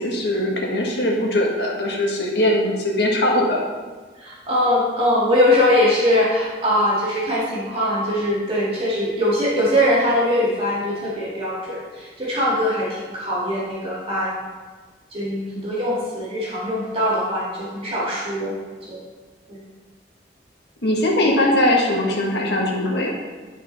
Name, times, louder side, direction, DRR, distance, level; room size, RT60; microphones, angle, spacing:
voice 1, 0.0-3.6 20.8-23.1, left 1 dB, 70° left, -1 dB, 1.6 m, -20 dB
voice 2, 4.2-14.4 15.1-18.5 18.9-19.0 19.5-19.6, left 1 dB, 30° right, -7 dB, 1.9 m, -21 dB
10.5 x 5.0 x 4.0 m, 1.4 s
head